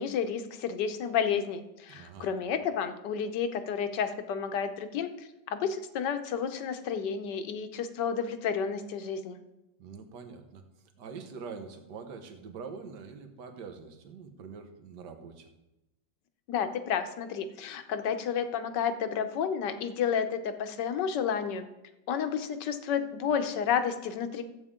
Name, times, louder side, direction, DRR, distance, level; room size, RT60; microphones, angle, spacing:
voice 1, 0.0-9.4 16.5-21.6 22.1-24.4, left 7 dB, 70° left, 9 dB, 1.4 m, -31 dB
voice 2, 1.9-2.3 9.8-10.6 11.0-15.5, right 5 dB, 65° right, 6 dB, 1.7 m, -44 dB
14.0 x 8.3 x 3.7 m, 0.96 s
omnidirectional pair, 2.0 m